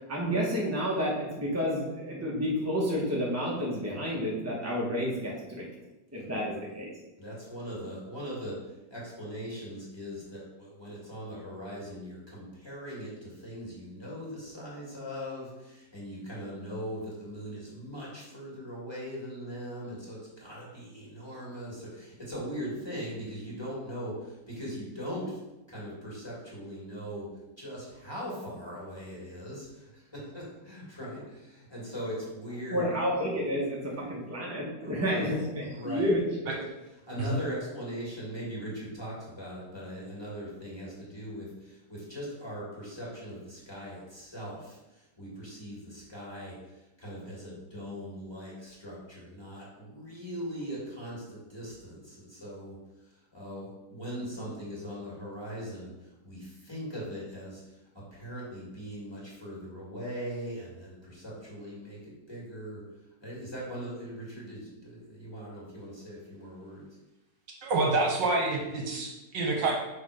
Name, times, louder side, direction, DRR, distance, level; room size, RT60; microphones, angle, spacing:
voice 1, 0.1-5.7 6.1-6.9 32.7-36.3, equal, 20° right, -4 dB, 0.4 m, -30 dB
voice 2, 7.2-8.5 8.9-25.4 25.7-27.3 27.6-32.9 33.9-34.0 34.8-35.3 35.7-36.1 37.1-46.5 47.0-52.8 53.3-55.9 56.2-57.6 58.1-62.8 63.2-66.9, equal, 15° left, -6 dB, 2.0 m, -40 dB
voice 3, 67.6-69.7, right 3 dB, 65° right, 0 dB, 1.6 m, -27 dB
6.0 x 3.5 x 4.9 m, 0.98 s
omnidirectional pair, 2.2 m